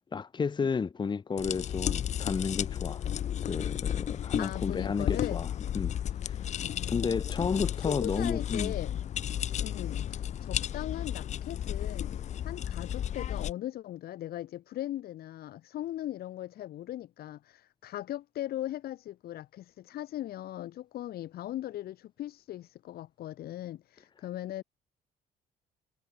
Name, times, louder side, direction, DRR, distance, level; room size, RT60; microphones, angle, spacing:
voice 1, 0.1-3.0 3.4-5.5 5.7-5.9 6.2-6.4 6.9-8.7, left 5 dB, 25° left, 1.5 m, -32 dB
sound 1, 1.4-13.5, left 10 dB, 45° left, 0.6 m, -33 dB
voice 2, 4.4-5.4 6.6-7.2 7.9-9.0 9.6-12.1 12.4-24.6, left 13 dB, 65° left, 1.6 m, -39 dB
cardioid pair, 110°, 17 cm